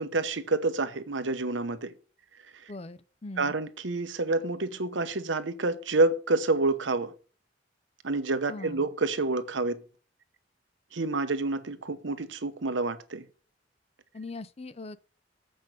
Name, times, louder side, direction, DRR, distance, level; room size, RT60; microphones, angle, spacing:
voice 1, 0.0-1.9 3.4-7.1 8.0-9.8 10.9-13.2, right 3 dB, 80° right, 1.0 m, -28 dB
voice 2, 2.7-3.6 8.5-8.9 14.1-15.0, left 2 dB, 35° left, 0.6 m, -41 dB
8.0 x 5.3 x 6.3 m
head